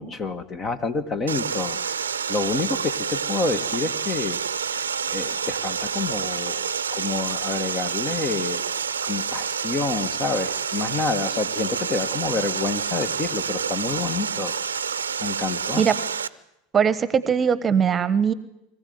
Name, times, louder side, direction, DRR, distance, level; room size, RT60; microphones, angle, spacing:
voice 1, 0.0-4.4 4.8-4.9 5.1-8.6 9.0-14.5 15.2-15.8, left 4 dB, 30° left, 11 dB, 2.0 m, -28 dB
Water, 1.3-16.3, right 7 dB, 90° right, 0.7 m, -28 dB
voice 2, 16.7-18.3, right 7 dB, 30° right, 17 dB, 1.2 m, -20 dB
24.0 x 15.5 x 9.5 m, 0.89 s
hypercardioid pair, 85°, 0 cm